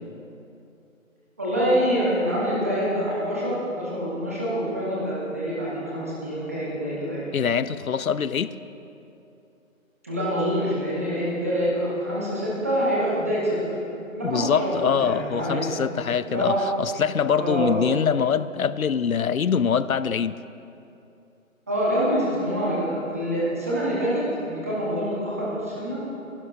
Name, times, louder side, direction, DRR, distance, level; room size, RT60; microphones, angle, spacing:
voice 1, 1.4-7.3 10.0-13.8 14.1-15.7 16.3-16.6 17.4-17.7 21.7-26.0, equal, 10° right, -7 dB, 0.9 m, -26 dB
voice 2, 7.3-8.5 14.2-20.4, left 7 dB, 80° left, 15 dB, 0.6 m, -24 dB
20.5 x 12.0 x 2.5 m, 2.7 s
figure-of-eight pair, 160°, 41 cm